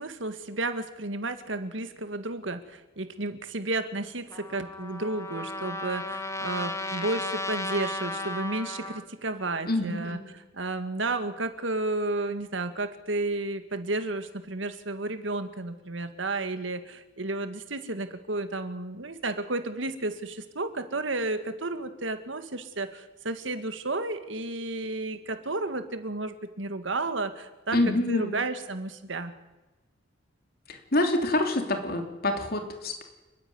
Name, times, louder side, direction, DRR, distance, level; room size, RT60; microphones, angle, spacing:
voice 1, 0.0-10.2 10.5-29.3, right 2 dB, 80° right, 10 dB, 1.9 m, -32 dB
Trumpet, 4.3-9.0, left 2 dB, 15° left, 1.7 m, -34 dB
voice 2, 9.7-10.2 27.7-28.4 30.7-33.0, left 1 dB, 55° left, 5 dB, 3.2 m, -27 dB
30.0 x 10.0 x 9.5 m, 1.1 s
head